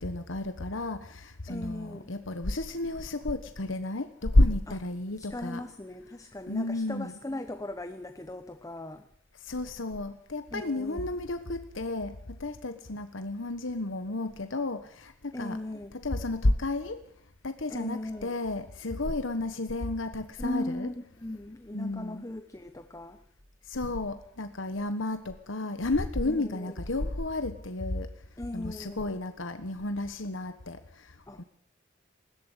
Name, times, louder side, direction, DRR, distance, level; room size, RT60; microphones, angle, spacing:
voice 1, 0.0-5.6 6.5-7.1 9.4-15.6 16.0-17.0 17.4-20.9 21.7-22.2 23.7-28.1 28.5-31.4, left 2 dB, 70° left, 9 dB, 1.4 m, -31 dB
voice 2, 1.5-2.1 4.7-4.8 5.2-9.1 10.5-11.2 15.3-16.0 17.7-18.3 20.4-23.2 26.3-26.8 28.4-29.2 31.3-31.4, left 1 dB, 15° left, 9 dB, 1.0 m, -38 dB
21.0 x 15.5 x 8.2 m, 0.67 s
head